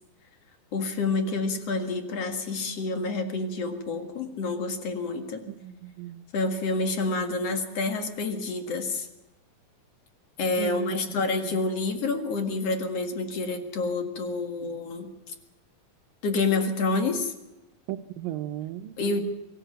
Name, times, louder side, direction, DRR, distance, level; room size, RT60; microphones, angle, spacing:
voice 1, 0.7-5.4 6.3-9.1 10.4-15.3 16.2-17.3 19.0-19.2, left 3 dB, 50° left, 5 dB, 2.6 m, -28 dB
voice 2, 5.5-6.2 10.6-11.0 17.9-19.0, right 14 dB, 80° right, 11 dB, 2.6 m, -35 dB
24.5 x 14.0 x 9.2 m, 0.99 s
omnidirectional pair, 4.1 m